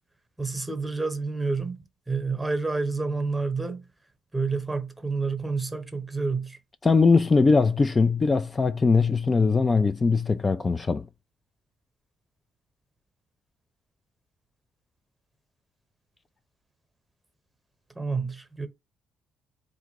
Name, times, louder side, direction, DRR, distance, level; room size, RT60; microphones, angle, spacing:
voice 1, 0.4-1.8 2.1-3.9 4.3-6.6 17.9-18.7, right 4 dB, 10° right, 1.0 m, -29 dB
voice 2, 6.8-11.1, left 4 dB, 30° left, 0.3 m, -21 dB
3.7 x 2.6 x 4.6 m
cardioid pair, 80°, 0 cm